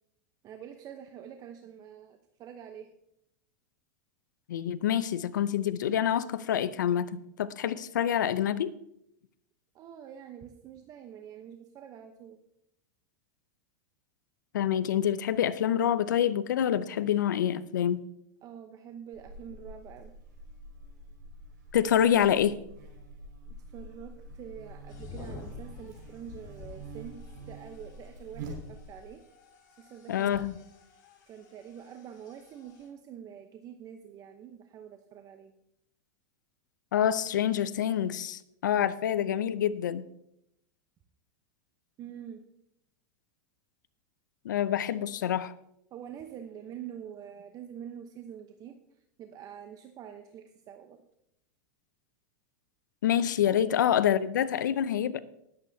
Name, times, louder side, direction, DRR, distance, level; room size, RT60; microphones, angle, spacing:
voice 1, 0.4-2.9 9.7-12.4 18.4-20.1 23.7-27.2 27.5-29.2 29.8-30.6 31.3-35.5 42.0-42.4 45.9-48.8 49.2-51.0, right 9 dB, 40° right, 0.9 m, -46 dB
voice 2, 4.5-8.7 14.5-18.0 21.7-22.6 30.1-30.5 36.9-40.1 44.4-45.5 53.0-55.2, left 10 dB, 90° left, 0.7 m, -27 dB
Buzz, 19.1-29.1, right 2 dB, 85° right, 5.3 m, -46 dB
sound 1, 24.9-32.9, left 5 dB, 50° left, 4.9 m, -50 dB
20.0 x 8.0 x 2.8 m
hypercardioid pair, 115°, 10 cm